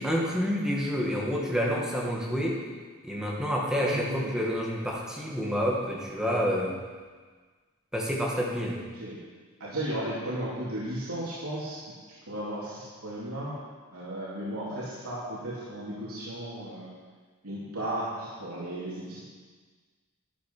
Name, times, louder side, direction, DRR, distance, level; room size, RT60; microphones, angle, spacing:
voice 1, 0.0-2.6 3.0-6.8 7.9-8.8, equal, 5° right, -3 dB, 2.0 m, -28 dB
voice 2, 3.7-4.4 8.9-9.1 9.6-11.9 12.3-13.5 13.9-16.9 17.4-19.2, right 1 dB, 85° right, -8 dB, 3.2 m, -35 dB
12.5 x 10.5 x 5.6 m, 1.5 s
head